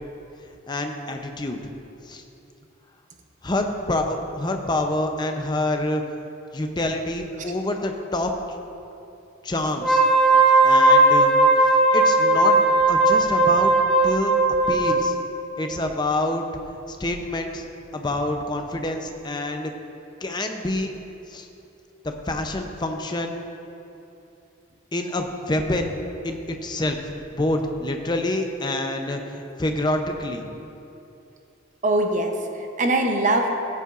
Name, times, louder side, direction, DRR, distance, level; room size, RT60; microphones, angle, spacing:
voice 1, 0.7-1.6 2.1-2.2 3.4-6.0 6.5-8.3 9.4-10.0 10.6-11.3 11.9-13.7 14.0-14.3 14.7-15.2 15.6-16.4 16.9-17.6 17.9-19.7 20.2-20.9 21.3-21.5 22.3-23.4 24.9-25.9 26.2-27.0 27.3-30.5, left 1 dB, 20° left, 4 dB, 0.6 m, -27 dB
Wind instrument woodwind instrument, 9.7-15.0, right 2 dB, 5° left, 1.4 m, -17 dB
voice 2, 31.8-33.5, right 1 dB, 40° right, 3 dB, 0.7 m, -22 dB
15.0 x 8.2 x 2.5 m, 2.8 s
head